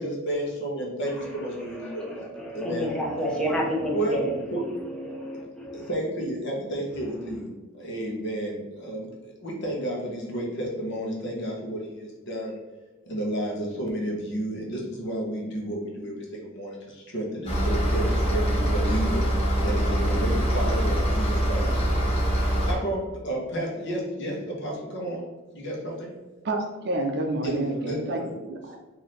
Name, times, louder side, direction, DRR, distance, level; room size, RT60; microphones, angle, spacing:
voice 1, 0.0-2.2 2.5-2.9 3.9-4.2 4.5-4.6 5.7-7.5 7.8-12.6 13.0-25.3 25.5-26.1 27.4-28.3, right 1 dB, 55° left, -1 dB, 1.0 m, -31 dB
voice 2, 1.8-4.4 4.8-5.9, equal, 5° left, -3 dB, 0.7 m, -30 dB
sound 1, 17.5-22.7, right 1 dB, 30° left, 1.0 m, -24 dB
voice 3, 26.4-28.2 28.5-28.8, right 2 dB, 50° right, 3 dB, 0.5 m, -28 dB
4.2 x 2.7 x 3.2 m, 1.2 s
head